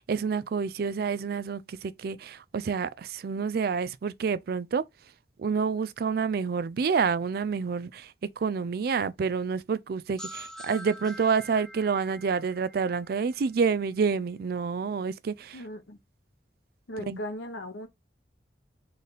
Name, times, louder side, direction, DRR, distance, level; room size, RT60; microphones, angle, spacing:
voice 1, 0.0-4.9 5.4-15.6 17.1-17.2, right 5 dB, 55° right, 0.4 m, -28 dB
sound 1, 10.2-13.8, equal, 5° left, 0.6 m, -45 dB
voice 2, 15.5-16.0 16.9-17.9, left 1 dB, 85° left, 1.0 m, -37 dB
4.0 x 3.3 x 4.0 m
head